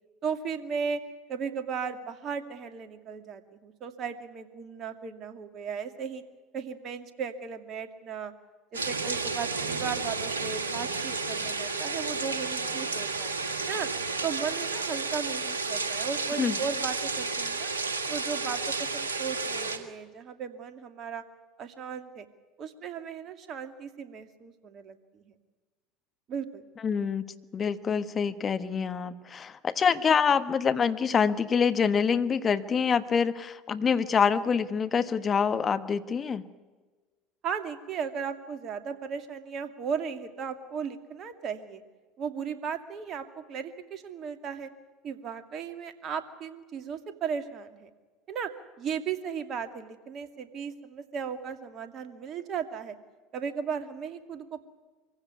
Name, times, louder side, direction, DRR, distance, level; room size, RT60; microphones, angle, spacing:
voice 1, 0.2-1.0 1.3-6.2 6.5-8.3 8.7-13.4 13.7-13.9 14.2-17.7 18.1-21.2 21.6-22.3 22.6-25.3 26.3-26.7 37.4-41.8 42.2-44.7 45.0-47.9 48.3-48.5 48.8-53.0 53.3-54.6, right 6 dB, 45° right, 8 dB, 2.4 m, -36 dB
sound 1, 8.7-19.8, right 4 dB, 90° right, 1.7 m, -32 dB
voice 2, 26.8-27.2 27.5-36.4, left 6 dB, 35° left, 11 dB, 1.3 m, -26 dB
24.0 x 16.5 x 9.6 m, 1.3 s
hypercardioid pair, 70°, 0 cm